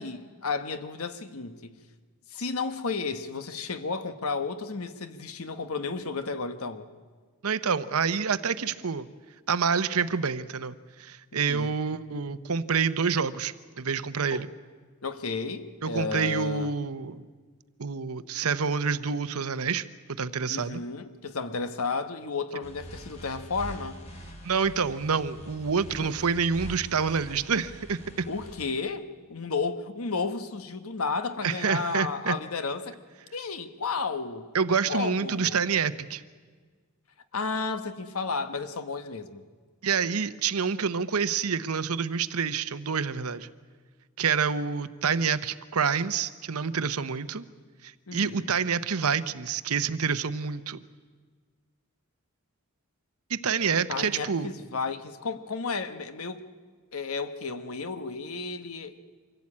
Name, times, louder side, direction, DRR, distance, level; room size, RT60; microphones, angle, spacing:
voice 1, 0.0-1.7 2.3-6.9 11.3-11.7 14.3-14.4 15.0-16.7 20.5-24.0 26.0-26.1 28.3-33.0 33.3-34.5 34.9-35.6 37.3-39.4 48.1-48.5 53.9-56.4 56.9-59.0, left 4 dB, 80° left, 10 dB, 1.2 m, -33 dB
voice 2, 7.4-9.1 9.5-14.5 15.8-17.2 17.8-19.9 20.2-20.8 24.4-28.3 31.4-32.4 34.5-36.2 39.8-43.5 44.2-47.4 47.8-50.8 53.3-54.5, right 6 dB, 85° right, 14 dB, 0.8 m, -27 dB
sound 1, 22.6-28.7, right 1 dB, 30° left, 2.7 m, -44 dB
25.0 x 16.0 x 8.6 m, 1.5 s
head